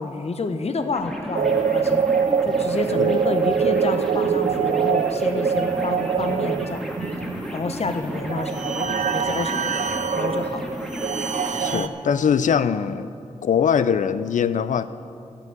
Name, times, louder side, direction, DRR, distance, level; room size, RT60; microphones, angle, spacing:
voice 1, 0.0-2.0 2.4-6.9 7.5-9.8 10.2-10.8 11.7-11.9, left 3 dB, 55° left, 8 dB, 0.8 m, -29 dB
sound 1, 0.9-11.8, equal, 5° left, 1.7 m, -33 dB
sound 2, 1.4-11.9, right 7 dB, 75° right, 0.5 m, -24 dB
voice 2, 11.6-13.1 13.4-14.9, left 7 dB, 85° left, 14 dB, 0.4 m, -22 dB
11.5 x 6.0 x 9.1 m, 2.4 s
cardioid pair, 60°, 13 cm